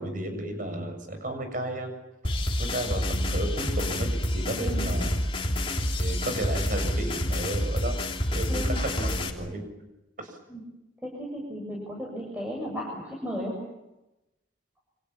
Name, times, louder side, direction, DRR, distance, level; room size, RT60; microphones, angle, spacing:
voice 1, 0.0-1.9 2.6-5.2 6.0-8.0 8.3-9.6 10.2-10.4, right 1 dB, 40° right, 6 dB, 7.2 m, -33 dB
sound 1, 2.2-9.3, left 1 dB, 25° left, 3.1 m, -28 dB
voice 2, 4.6-4.9 8.5-8.8 10.5-10.6 11.0-13.6, equal, 10° right, -2 dB, 7.3 m, -35 dB
29.5 x 26.5 x 7.3 m, 0.96 s
head